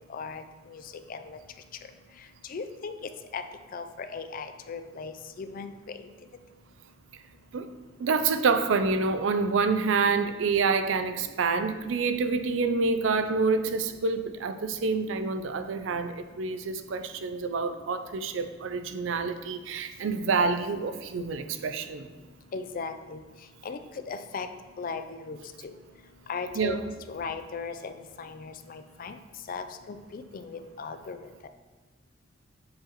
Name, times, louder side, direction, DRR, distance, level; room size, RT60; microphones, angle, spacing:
voice 1, 0.1-0.4 0.7-0.8 1.1-1.4 2.5-2.9 3.3-3.4 3.7-6.0 22.5-23.2 23.6-23.8 24.1-24.5 24.8-25.4 25.6-25.7 26.3-26.8 27.1-27.9 28.2-29.1 29.5-31.2, left 4 dB, 45° left, 9 dB, 0.4 m, -37 dB
voice 2, 8.0-22.1 26.6-26.9, right 4 dB, 75° right, 9 dB, 0.4 m, -27 dB
7.2 x 4.8 x 3.0 m, 1.3 s
head